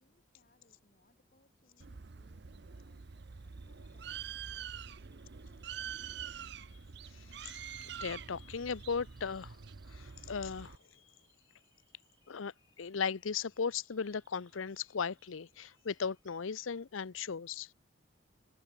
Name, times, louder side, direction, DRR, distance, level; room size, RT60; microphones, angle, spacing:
voice 1, 0.0-6.3, left 1 dB, 45° left, 5.5 m, -71 dB
Bird, 1.8-10.8, right 7 dB, 60° right, 0.7 m, -46 dB
Bird vocalization bird call bird song, 2.6-16.5, right 5 dB, 20° right, 6.3 m, -73 dB
voice 2, 8.0-9.6 9.9-10.8 12.3-17.7, left 6 dB, 90° left, 0.7 m, -37 dB
head